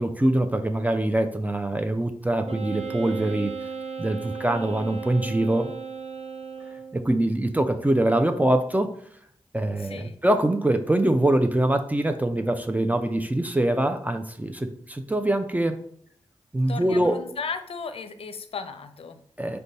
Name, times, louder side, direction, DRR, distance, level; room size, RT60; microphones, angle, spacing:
voice 1, 0.0-3.5 4.0-5.7 6.9-8.9 9.5-15.8 16.5-17.2 19.4-19.6, right 1 dB, 15° right, 6 dB, 0.5 m, -24 dB
Wind instrument woodwind instrument, 2.4-7.1, right 5 dB, 90° right, 0.7 m, -36 dB
voice 2, 9.8-10.2 16.7-19.2, left 5 dB, 65° left, 9 dB, 0.5 m, -35 dB
5.0 x 2.3 x 4.0 m, 0.64 s
cardioid pair, 40°, 11 cm